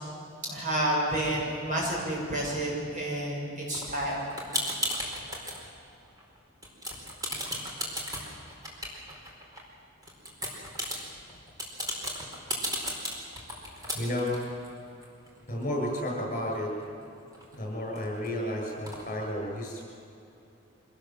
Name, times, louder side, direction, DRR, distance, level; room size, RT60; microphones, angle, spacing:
voice 1, 0.4-4.2, right 1 dB, 40° right, -3 dB, 7.2 m, -30 dB
sound 1, 3.7-5.6 6.0-6.4 6.6-9.6 10.0-16.2 16.5-16.6 16.8-18.3 18.9-19.0, equal, 20° right, 4.4 m, -35 dB
voice 2, 13.9-14.4 15.5-16.7 17.5-19.8, left 1 dB, 40° left, 0 dB, 7.4 m, -32 dB
25.0 x 18.5 x 7.6 m, 2.7 s
head